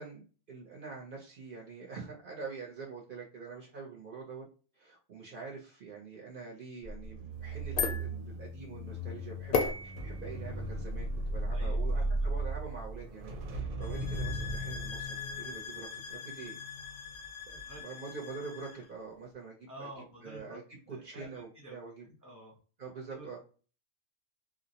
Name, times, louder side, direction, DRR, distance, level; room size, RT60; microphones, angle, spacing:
voice 1, 0.0-4.4 4.8-9.6 9.8-16.6 17.5-19.9 20.2-22.1 22.8-23.4, right 4 dB, 55° right, -2 dB, 0.7 m, -45 dB
sound 1, 6.8-17.1 17.5-17.8, right 1 dB, 90° right, 1.0 m, -36 dB
sound 2, 7.3-13.5, left 5 dB, 60° left, 0.6 m, -38 dB
voice 2, 11.5-12.3 17.7-17.8 19.7-20.6 20.8-22.6 23.1-23.4, right 1 dB, 20° left, -3 dB, 0.6 m, -50 dB
sound 3, 13.8-18.9, left 6 dB, 80° left, 0.9 m, -44 dB
2.4 x 2.0 x 2.7 m, 0.38 s
omnidirectional pair, 1.3 m